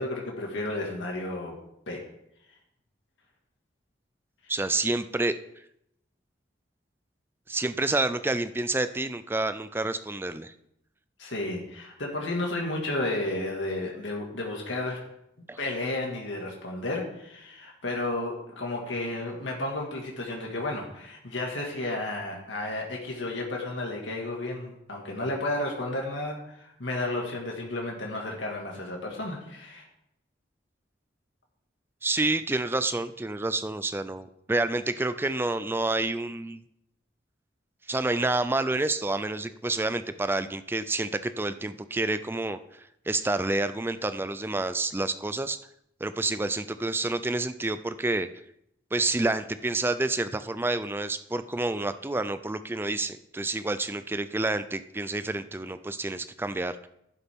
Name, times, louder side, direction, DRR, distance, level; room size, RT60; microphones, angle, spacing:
voice 1, 0.0-1.6 1.9-2.0 4.4-4.5 11.2-15.0 15.6-29.8, left 2 dB, 85° left, -1 dB, 2.0 m, -32 dB
voice 2, 4.5-5.3 7.5-10.5 15.5-15.6 32.0-36.6 37.9-42.6 43.1-45.6 46.0-48.3 48.9-56.9, right 2 dB, 10° right, 12 dB, 0.4 m, -28 dB
11.0 x 11.0 x 3.6 m, 0.79 s
head